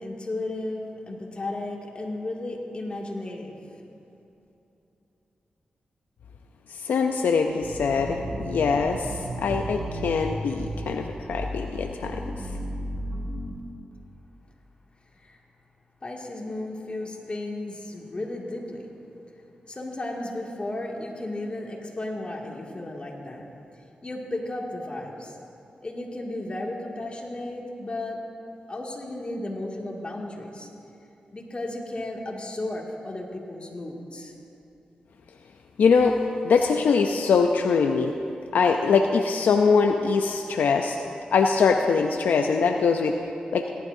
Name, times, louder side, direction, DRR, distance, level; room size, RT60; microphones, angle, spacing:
voice 1, 0.0-3.6 15.2-15.4 16.0-18.9 19.7-23.5 24.0-25.4 25.8-28.2 28.7-30.7 31.3-34.3, left 2 dB, 40° left, -1 dB, 2.2 m, -34 dB
voice 2, 6.7-12.2 35.8-36.2 36.4-38.1 38.5-41.0 41.3-43.1 43.5-43.7, left 5 dB, 85° left, 4 dB, 0.5 m, -22 dB
sound 1, 7.6-13.6, right 1 dB, 90° right, 1.8 m, -34 dB
18.0 x 12.0 x 2.7 m, 2.9 s
cardioid pair, 50°, 3 cm